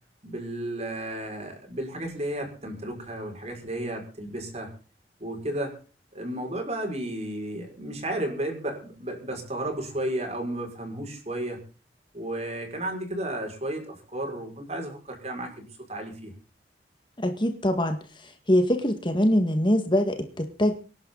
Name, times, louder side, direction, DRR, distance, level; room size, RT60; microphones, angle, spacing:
voice 1, 0.2-4.7 5.2-5.7 6.1-11.6 12.1-15.6 15.9-16.3, right 1 dB, 35° right, 3 dB, 6.0 m, -33 dB
voice 2, 17.2-20.7, equal, 25° left, 7 dB, 1.9 m, -24 dB
25.5 x 11.5 x 4.0 m, 0.37 s
head